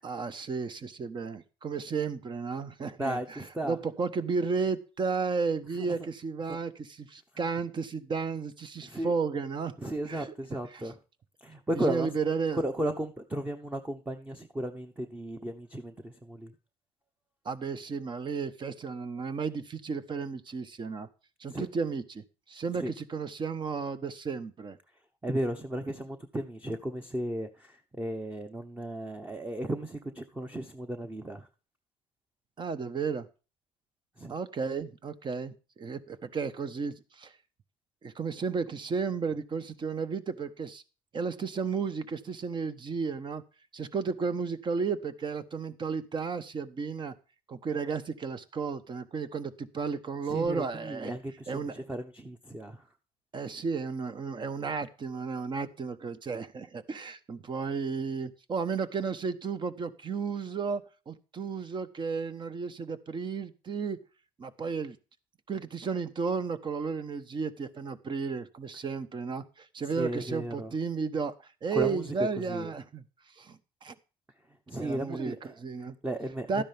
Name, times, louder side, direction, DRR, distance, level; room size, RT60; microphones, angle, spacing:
voice 1, 0.0-10.3 10.7-10.8 11.7-12.6 17.4-21.1 21.4-24.8 32.6-33.3 34.3-37.3 38.0-40.8 41.1-43.4 43.7-47.1 47.5-51.2 51.5-51.8 53.3-64.0 64.4-65.0 65.5-69.4 69.7-71.3 71.6-73.0 73.4-73.9 74.8-75.9 76.5-76.6, right 5 dB, 35° right, 1.2 m, -33 dB
voice 2, 3.0-3.8 5.8-5.9 6.5-6.6 7.3-7.4 8.8-9.1 9.8-11.0 11.4-12.1 12.5-16.5 21.5-21.7 22.8-22.9 25.2-31.5 34.2-34.3 50.2-52.8 69.8-70.7 71.7-72.7 74.7-75.6 76.0-76.6, right 1 dB, 10° right, 1.1 m, -35 dB
12.5 x 10.0 x 3.5 m
cardioid pair, 100°, 14 cm